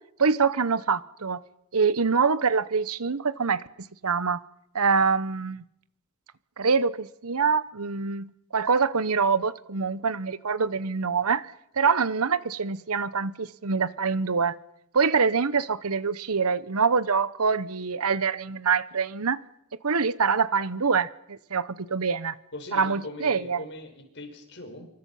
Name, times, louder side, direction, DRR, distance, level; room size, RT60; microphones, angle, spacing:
voice 1, 0.2-1.4 1.7-3.6 4.0-4.4 4.7-5.6 6.6-11.5 11.8-14.5 14.9-19.4 19.8-22.3 22.7-23.6, right 5 dB, 75° right, 1.0 m, -25 dB
voice 2, 22.5-24.9, left 2 dB, 55° left, 5.5 m, -40 dB
27.0 x 24.0 x 5.7 m
head